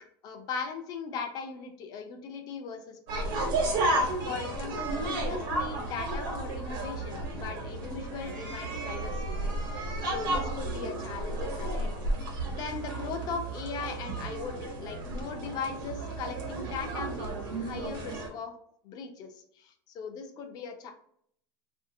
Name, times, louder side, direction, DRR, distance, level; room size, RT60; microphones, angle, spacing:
voice 1, 0.2-3.6 4.2-9.5 10.1-11.9 12.5-18.6 18.8-20.9, left 5 dB, 35° left, 5 dB, 0.5 m, -39 dB
sound 1, 3.1-18.3, right 2 dB, 85° right, 1.0 m, -33 dB
3.2 x 2.6 x 2.6 m, 0.67 s
cardioid pair, 170°, 11 cm